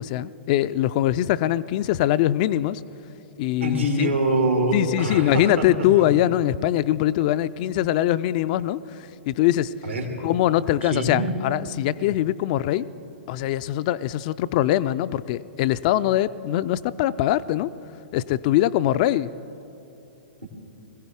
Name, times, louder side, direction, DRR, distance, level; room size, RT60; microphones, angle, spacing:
voice 1, 0.0-2.8 3.4-4.1 4.7-9.7 10.2-12.9 13.3-17.7 18.1-19.3, left 13 dB, 40° left, 15 dB, 0.3 m, -22 dB
voice 2, 3.6-5.7 6.0-6.1 9.8-10.1 10.8-11.3, right 1 dB, 80° right, 2 dB, 2.4 m, -24 dB
21.5 x 16.0 x 3.6 m, 2.8 s
figure-of-eight pair, 110°, 6 cm